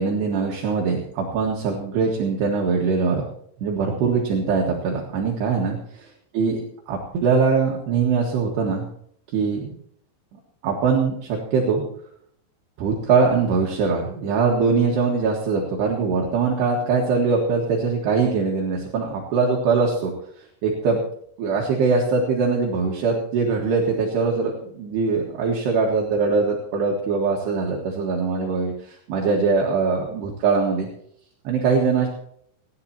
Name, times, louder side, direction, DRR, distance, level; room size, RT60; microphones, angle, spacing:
voice 1, 0.0-3.2 3.6-6.1 6.3-6.6 6.9-8.9 9.3-9.7 10.6-11.8 12.8-20.1 20.6-21.0 21.4-30.9 31.4-32.1, right 4 dB, 65° right, -1 dB, 3.4 m, -22 dB
28.5 x 11.0 x 2.9 m, 0.69 s
omnidirectional pair, 5.5 m